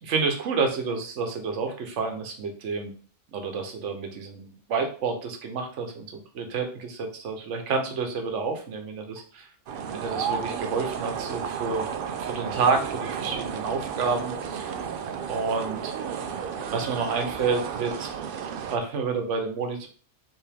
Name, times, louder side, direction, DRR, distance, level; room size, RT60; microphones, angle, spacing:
voice 1, 0.0-2.9 3.3-9.5 9.9-11.8 12.2-14.7 15.3-15.9 16.7-18.1 18.7-19.9, right 4 dB, 80° right, 4 dB, 1.1 m, -29 dB
sound 1, 9.7-18.8, right 7 dB, 60° right, 0.6 m, -33 dB
4.6 x 3.0 x 3.5 m, 0.41 s
omnidirectional pair, 1.2 m